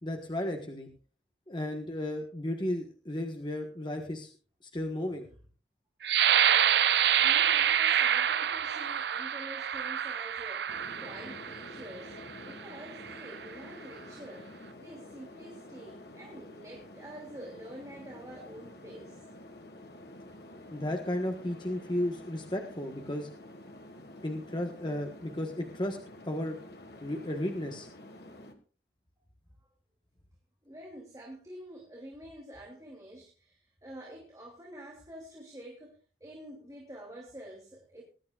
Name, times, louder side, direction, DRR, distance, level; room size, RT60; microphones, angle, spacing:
voice 1, 0.0-0.9 1.5-4.3 4.7-5.3 20.7-23.3 24.2-26.0 26.2-26.6 27.0-27.9, left 1 dB, 25° left, 3 dB, 1.3 m, -34 dB
sound 1, 6.0-11.7 12.4-12.5 13.0-13.4, right 9 dB, 75° right, 0.5 m, -26 dB
voice 2, 7.2-14.5 14.8-19.2 30.6-35.9 36.2-38.0, right 1 dB, 20° right, -2 dB, 2.9 m, -47 dB
sound 2, 10.7-28.5, left 1 dB, 65° left, 1.8 m, -49 dB
20.5 x 11.5 x 2.4 m, 0.38 s
head